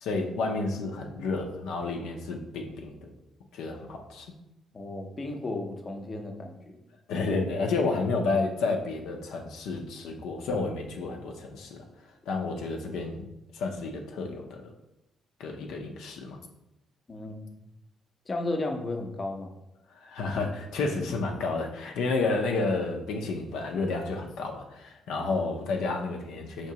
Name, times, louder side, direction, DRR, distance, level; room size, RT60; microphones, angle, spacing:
voice 1, 0.0-3.1 3.5-4.3 7.1-11.8 12.3-13.3 13.5-14.7 15.4-16.4 19.9-26.7, left 3 dB, 85° left, 1 dB, 0.5 m, -31 dB
voice 2, 4.7-6.8 17.1-17.4 18.3-19.5, left 2 dB, 35° left, 3 dB, 0.6 m, -34 dB
4.6 x 2.9 x 2.8 m, 0.87 s
cardioid pair, 90°, 0 cm